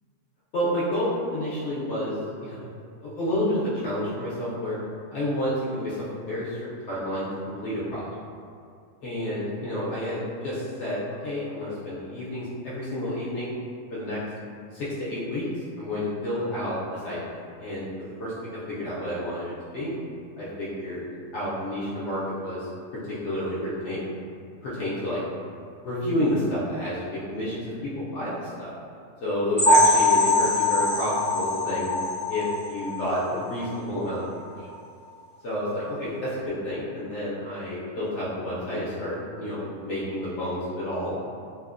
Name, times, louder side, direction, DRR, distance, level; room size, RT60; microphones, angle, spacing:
voice 1, 0.5-2.7 3.0-4.8 5.1-8.1 9.0-13.5 13.9-14.2 14.7-19.9 20.4-21.1 21.3-24.0 24.6-25.2 25.8-28.7 29.2-31.9 32.3-34.7 35.4-41.2, left 1 dB, 70° left, -9 dB, 0.8 m, -30 dB
sound 1, 29.6-33.2 33.6-33.8 34.1-34.2 34.7-34.8, left 2 dB, 40° left, 0.4 m, -22 dB
2.9 x 2.0 x 2.4 m, 2.3 s
omnidirectional pair, 1.4 m